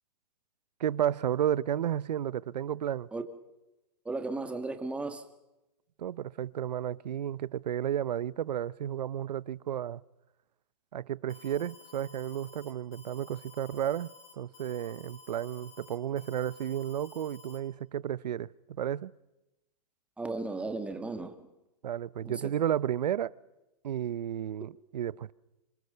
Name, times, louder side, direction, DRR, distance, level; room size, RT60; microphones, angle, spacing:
voice 1, 0.8-3.1 6.0-10.0 10.9-14.1 14.4-19.1 21.8-23.3 23.8-25.3, right 10 dB, 85° right, 0.8 m, -32 dB
voice 2, 4.0-5.2 20.2-21.3 22.2-22.3, right 3 dB, 5° right, 1.6 m, -35 dB
Alarm, 11.3-17.6, left 4 dB, 25° left, 3.9 m, -54 dB
25.5 x 24.0 x 6.7 m
hypercardioid pair, 145°, 21 cm